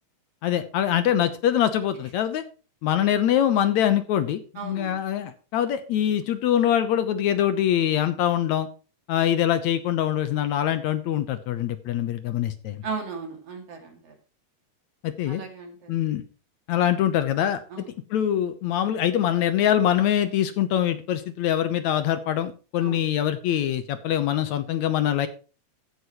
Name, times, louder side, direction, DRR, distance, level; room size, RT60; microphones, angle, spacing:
voice 1, 0.4-2.4 2.8-8.7 9.1-12.8 15.0-15.4 15.9-16.2 16.7-17.6 18.1-25.3, left 10 dB, 70° left, 11 dB, 2.1 m, -24 dB
voice 2, 4.6-4.9 12.8-14.1 15.3-15.9 17.7-17.9 22.8-23.0, right 5 dB, 50° right, 3 dB, 3.3 m, -36 dB
15.0 x 9.6 x 3.1 m, 0.35 s
omnidirectional pair, 3.6 m